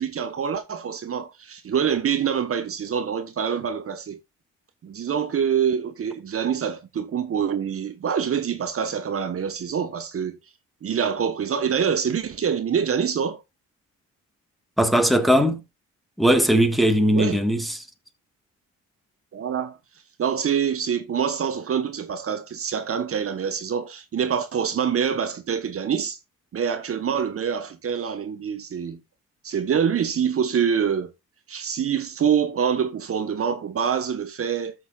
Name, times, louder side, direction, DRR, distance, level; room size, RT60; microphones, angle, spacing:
voice 1, 0.0-4.2 4.8-10.4 10.8-13.4 17.1-17.4 19.3-19.8 20.2-26.2 26.5-29.0 29.4-31.1 31.5-34.7, right 7 dB, 50° right, 1.2 m, -25 dB
voice 2, 14.8-15.6 16.2-17.8, equal, ahead, 1.8 m, -19 dB
14.0 x 6.6 x 2.4 m
cardioid pair, 90°, 30 cm